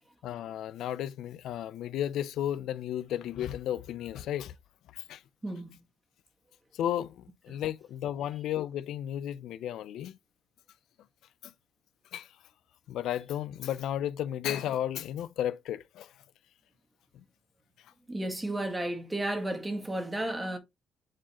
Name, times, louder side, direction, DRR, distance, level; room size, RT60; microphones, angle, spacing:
voice 1, 0.2-4.5 4.9-5.2 6.7-10.2 11.4-11.5 12.1-12.3 12.9-16.1 17.1-17.2, left 11 dB, 80° left, 0.4 m, -34 dB
voice 2, 5.4-5.8 7.5-7.6 18.1-20.6, right 1 dB, 15° right, 1.7 m, -33 dB
8.8 x 3.9 x 3.0 m
cardioid pair, 90°, 0 cm